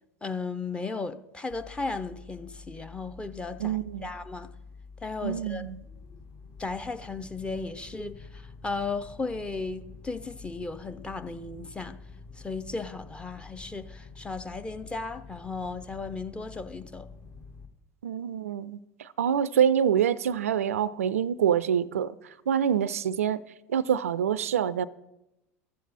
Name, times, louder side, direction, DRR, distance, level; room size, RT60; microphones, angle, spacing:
voice 1, 0.2-4.5 5.0-5.7 6.6-12.0 12.4-17.1, left 3 dB, 15° left, 0.6 m, -35 dB
sound 1, 1.5-17.7, left 4 dB, 40° left, 1.4 m, -48 dB
voice 2, 3.6-4.1 5.2-5.8 18.0-23.4 23.7-24.8, right 8 dB, 75° right, 0.4 m, -26 dB
14.0 x 7.5 x 4.1 m
figure-of-eight pair, 80°, 8 cm